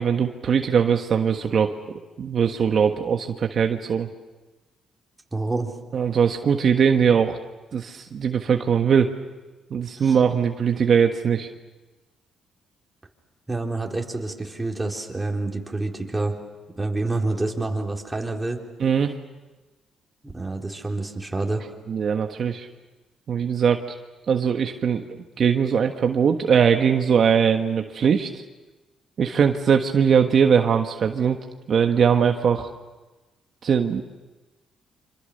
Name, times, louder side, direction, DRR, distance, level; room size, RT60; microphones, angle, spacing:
voice 1, 0.0-4.1 5.9-7.4 7.7-9.1 9.7-11.5 18.8-19.1 21.9-22.7 23.3-23.8 24.3-28.4 29.2-31.4 31.7-32.7 33.6-34.0, right 7 dB, 55° right, 5 dB, 1.3 m, -21 dB
voice 2, 5.3-5.7 10.0-10.2 13.5-16.4 16.8-18.6 20.2-21.6, right 2 dB, 15° right, 0 dB, 3.8 m, -27 dB
27.5 x 26.0 x 6.7 m, 1.2 s
cardioid pair, 90°, 0 cm